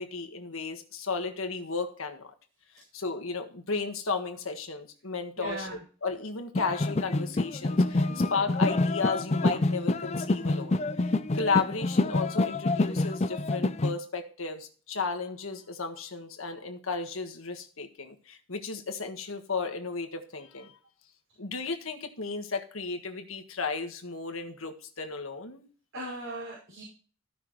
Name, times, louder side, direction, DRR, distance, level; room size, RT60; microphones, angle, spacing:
voice 1, 0.0-2.3 2.9-5.7 6.0-20.7 21.4-25.7, left 4 dB, 80° left, 6 dB, 1.5 m, -34 dB
voice 2, 5.4-5.8 8.1-8.3 25.9-26.8, right 1 dB, 70° right, -6 dB, 5.5 m, -38 dB
sound 1, 6.6-13.9, left 2 dB, 30° left, 0.5 m, -27 dB
15.0 x 5.9 x 3.1 m, 0.40 s
head